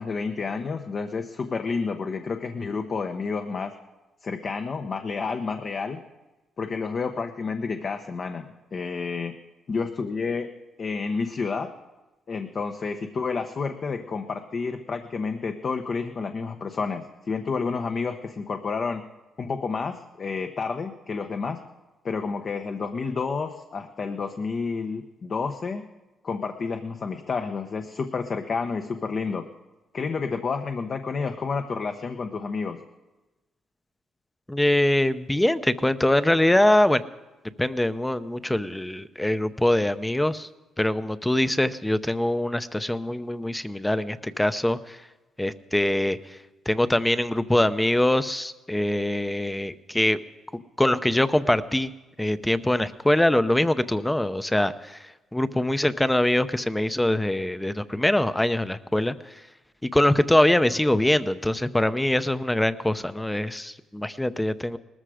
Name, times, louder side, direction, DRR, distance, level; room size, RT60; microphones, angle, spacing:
voice 1, 0.0-3.7 4.2-6.0 6.6-9.4 9.7-10.5 10.8-11.7 12.3-19.0 19.4-21.6 22.0-25.8 26.2-29.5 29.9-32.8, left 4 dB, 45° left, 6 dB, 1.0 m, -30 dB
voice 2, 34.5-37.0 37.6-40.5 40.8-45.0 45.4-46.4 46.7-50.2 50.5-51.9 52.2-59.1 59.8-64.8, left 1 dB, 10° left, 13 dB, 0.7 m, -23 dB
19.5 x 14.0 x 5.0 m, 1.1 s
cardioid pair, 90°, 0 cm